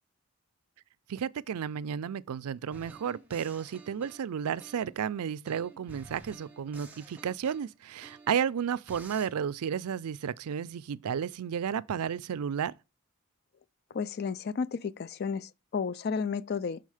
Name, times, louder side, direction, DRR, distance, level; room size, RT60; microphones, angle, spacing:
voice 1, 1.1-12.7, right 7 dB, 90° right, 0.4 m, -32 dB
sound 1, 2.7-5.1 5.4-8.5 8.9-9.3, right 3 dB, 5° right, 0.8 m, -51 dB
voice 2, 13.9-16.8, left 5 dB, 45° left, 0.3 m, -32 dB
6.4 x 3.9 x 4.9 m
head